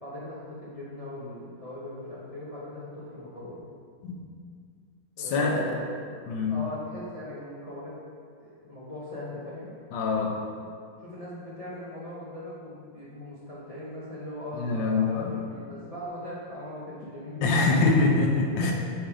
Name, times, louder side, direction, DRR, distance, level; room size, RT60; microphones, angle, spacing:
voice 1, 0.0-3.6 5.2-5.9 6.5-8.0 8.4-9.7 11.0-17.8 18.5-18.7, left 1 dB, 30° left, -8 dB, 0.7 m, -39 dB
voice 2, 5.2-5.7 6.3-6.6 9.9-10.4 14.5-15.4 17.4-18.7, left 3 dB, 70° left, 0 dB, 1.5 m, -24 dB
6.5 x 3.6 x 4.8 m, 2.1 s
omnidirectional pair, 2.2 m